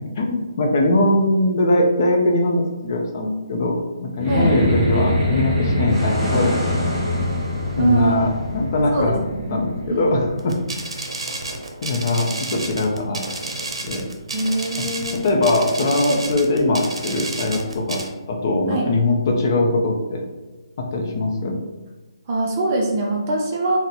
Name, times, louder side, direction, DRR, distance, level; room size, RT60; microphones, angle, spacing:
voice 1, 0.2-6.6 7.8-9.2 9.5-10.6 11.8-13.3 13.8-14.1 14.8-14.9 15.2-18.0 18.3-20.2 20.8-21.6, left 2 dB, 40° left, 0 dB, 0.5 m, -21 dB
sound 1, 4.2-10.8, left 1 dB, 10° right, 1.0 m, -24 dB
voice 2, 7.8-8.2 8.9-10.1 14.3-15.3 16.0-16.2 18.7-18.9 22.3-23.8, right 2 dB, 25° right, -1 dB, 0.4 m, -23 dB
sound 2, 10.4-18.1, right 2 dB, 85° right, 0.6 m, -31 dB
4.1 x 2.1 x 2.7 m, 1.2 s
hypercardioid pair, 170°, 3 cm